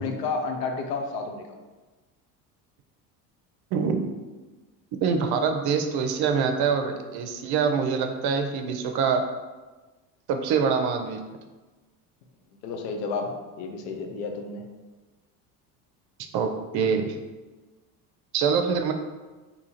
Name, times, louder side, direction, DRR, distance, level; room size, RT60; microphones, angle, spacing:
voice 1, 0.0-1.5 12.6-14.6, left 4 dB, 85° left, 4 dB, 0.7 m, -31 dB
voice 2, 3.7-4.1 5.0-9.2 10.3-11.2 16.3-17.2 18.3-18.9, right 6 dB, 55° right, 6 dB, 0.6 m, -25 dB
3.6 x 2.9 x 2.8 m, 1.2 s
hypercardioid pair, 80°, 46 cm